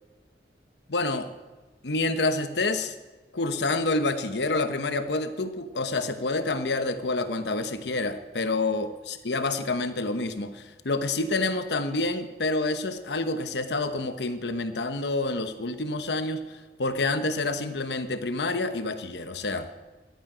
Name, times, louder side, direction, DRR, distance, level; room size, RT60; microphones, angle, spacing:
voice 1, 0.9-1.3 1.8-2.9 3.3-19.7, left 2 dB, 80° left, 9 dB, 1.0 m, -28 dB
15.0 x 11.5 x 5.1 m, 1.2 s
head